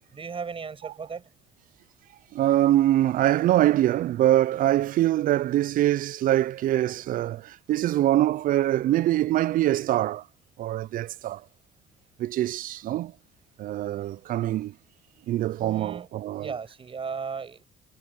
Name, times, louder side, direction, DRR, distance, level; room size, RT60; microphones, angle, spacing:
voice 1, 0.1-1.3 15.6-16.1 16.4-17.7, right 5 dB, 35° right, 6.3 m, -36 dB
voice 2, 2.3-10.2 10.6-11.4 12.2-13.1 13.6-14.7 15.3-16.5, right 13 dB, 55° right, 0.4 m, -24 dB
cardioid pair, 110°, 17 cm